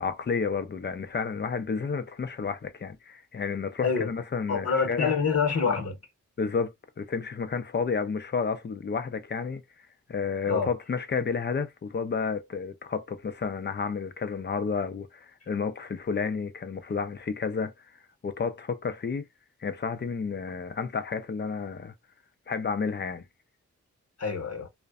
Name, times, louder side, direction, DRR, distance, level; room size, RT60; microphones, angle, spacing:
voice 1, 0.0-5.1 5.7-5.8 6.4-9.6 10.1-17.7 18.2-19.2 19.6-21.9 22.5-23.2, left 5 dB, 35° left, 0.5 m, -31 dB
voice 2, 4.5-5.9 10.5-10.7 24.2-24.7, left 5 dB, 55° left, 0.9 m, -26 dB
2.5 x 2.1 x 2.3 m
cardioid pair, 45°, 30 cm